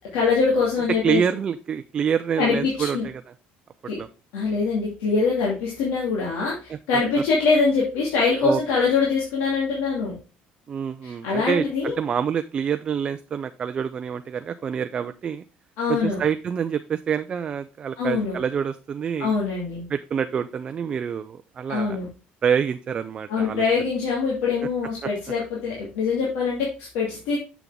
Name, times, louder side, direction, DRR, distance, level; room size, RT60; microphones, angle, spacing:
voice 1, 0.1-1.2 2.4-3.0 3.9-4.0 4.3-10.2 11.0-11.9 15.8-16.2 18.0-18.4 19.2-19.8 21.7-22.1 23.3-27.4, left 4 dB, 85° left, -4 dB, 2.5 m, -23 dB
voice 2, 1.0-3.2 4.0-4.1 6.7-6.8 8.4-8.6 10.7-15.4 15.9-19.3 19.9-22.0 22.4-23.6 25.0-25.1, right 7 dB, 25° right, 9 dB, 0.3 m, -26 dB
7.0 x 6.0 x 3.4 m, 0.33 s
cardioid pair, 160°, 4 cm